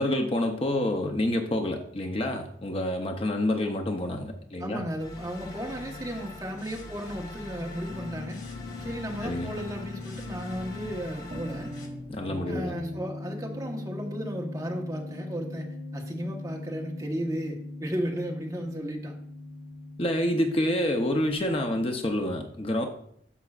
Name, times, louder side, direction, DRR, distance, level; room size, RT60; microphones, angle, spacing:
voice 1, 0.0-4.9 9.2-9.5 12.1-12.7 20.0-22.9, left 1 dB, 30° left, 4 dB, 0.7 m, -28 dB
voice 2, 4.6-8.4 8.8-11.7 12.4-19.2, equal, 15° right, 0 dB, 1.1 m, -34 dB
sound 1, 5.0-11.9, left 2 dB, 75° left, 2.6 m, -42 dB
sound 2, 7.9-20.9, left 2 dB, 40° right, 2.8 m, -40 dB
13.0 x 5.5 x 2.4 m, 0.66 s
head